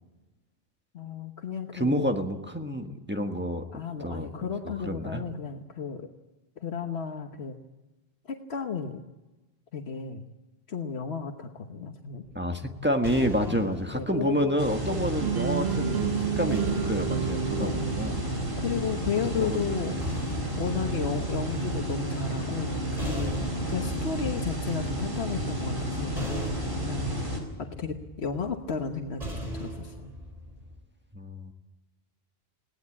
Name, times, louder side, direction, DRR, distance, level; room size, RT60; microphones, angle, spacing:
voice 1, 0.9-2.0 3.7-6.1 6.6-7.6 8.3-9.0 9.7-10.3 10.7-12.2 13.4-14.6 14.9-15.2 17.6-18.0 18.6-20.0 20.6-26.5 26.8-27.3 27.6-30.1, left 6 dB, 75° left, 4 dB, 1.4 m, -34 dB
voice 2, 1.7-3.6 4.0-4.3 4.6-5.2 12.3-18.2 19.4-19.6 31.1-31.5, equal, 10° right, 4 dB, 1.5 m, -29 dB
sound 1, 12.2-15.5 16.5-18.7 19.7-30.8, equal, 35° right, 4.7 m, -41 dB
sound 2, 14.6-27.4, right 1 dB, 55° right, 4.8 m, -31 dB
sound 3, 15.2-19.2, right 9 dB, 75° right, 1.2 m, -31 dB
21.0 x 17.5 x 8.6 m, 1.1 s
omnidirectional pair, 1.1 m